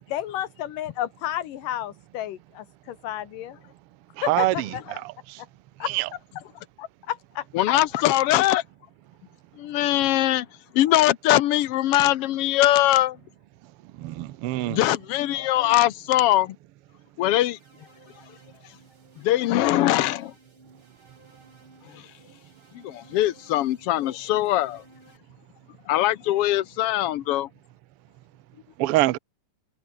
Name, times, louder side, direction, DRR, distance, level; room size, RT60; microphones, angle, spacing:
voice 1, 0.1-3.6 4.2-4.8 5.4-5.5 5.8-5.9 6.8-7.7 22.1-22.4, left 12 dB, 90° left, 3.0 m, -32 dB
voice 2, 7.5-8.6 9.6-10.5 10.7-13.2 14.7-16.6 17.2-17.6 19.2-20.3 21.9-22.1 22.7-24.8 25.9-27.5, left 14 dB, 70° left, 1.4 m, -22 dB
voice 3, 14.0-14.8 28.8-29.2, right 17 dB, 80° right, 1.3 m, -23 dB
sound 1, 17.5-25.2, right 2 dB, 15° right, 4.2 m, -56 dB
omnidirectional pair, 3.7 m